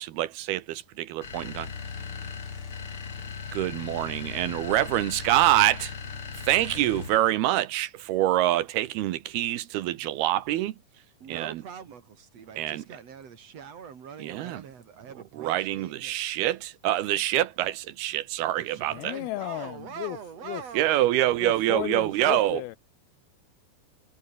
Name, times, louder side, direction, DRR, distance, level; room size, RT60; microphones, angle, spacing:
voice 1, 0.0-1.7 3.5-5.9 6.4-10.8 11.3-11.6 12.6-12.8 14.2-14.6 15.3-19.1 20.7-22.6, right 14 dB, 75° right, 3.0 m, -26 dB
sound 1, 1.2-7.4, left 6 dB, 35° left, 3.2 m, -38 dB
voice 2, 11.2-16.1 18.6-21.2, right 7 dB, 45° right, 3.1 m, -43 dB
voice 3, 18.9-20.2 20.4-20.6 21.4-22.8, left 18 dB, 80° left, 2.4 m, -34 dB
omnidirectional pair, 4.6 m